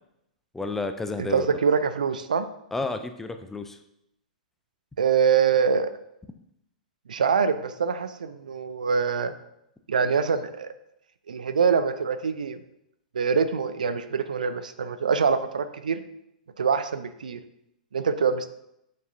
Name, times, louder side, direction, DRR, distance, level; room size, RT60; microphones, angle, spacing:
voice 1, 0.5-1.5 2.7-3.8, left 3 dB, 5° left, 8 dB, 0.5 m, -31 dB
voice 2, 1.2-2.5 5.0-5.9 7.1-9.3 9.9-10.7 11.3-12.6 13.1-16.0 16.6-17.4 17.9-18.5, right 6 dB, 65° right, 11 dB, 0.5 m, -24 dB
8.4 x 6.5 x 2.7 m, 0.80 s
figure-of-eight pair, 105°, 5 cm